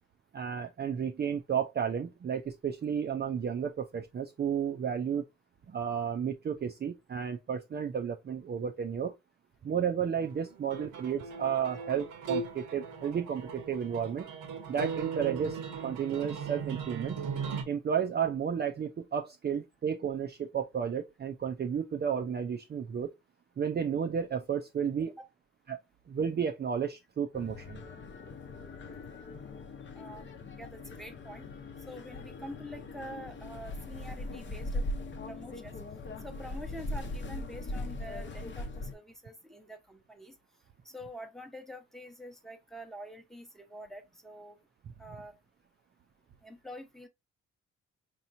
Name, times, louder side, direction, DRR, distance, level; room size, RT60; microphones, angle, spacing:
voice 1, 0.3-5.2 5.7-9.1 9.6-14.3 14.7-17.2 17.7-23.1 23.6-25.1 25.7-25.8 26.1-27.8, right 7 dB, 35° right, 0.5 m, -32 dB
sound 1, 10.2-17.6, right 5 dB, 75° right, 1.0 m, -38 dB
sound 2, 27.3-38.9, left 2 dB, 40° left, 0.8 m, -40 dB
voice 2, 29.9-30.3 30.6-31.5 31.9-34.8 35.2-35.8 36.2-40.3 40.8-44.6 45.0-45.3 46.4-47.1, equal, ahead, 0.9 m, -46 dB
4.6 x 2.9 x 2.6 m
cardioid pair, 90°, 30 cm